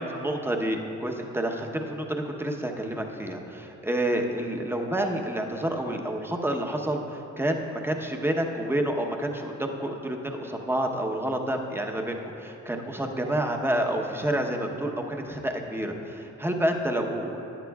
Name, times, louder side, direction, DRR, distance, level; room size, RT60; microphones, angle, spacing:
voice 1, 0.0-17.4, right 1 dB, 10° right, 2 dB, 0.9 m, -29 dB
15.0 x 10.5 x 2.4 m, 3.0 s
cardioid pair, 90°, 30 cm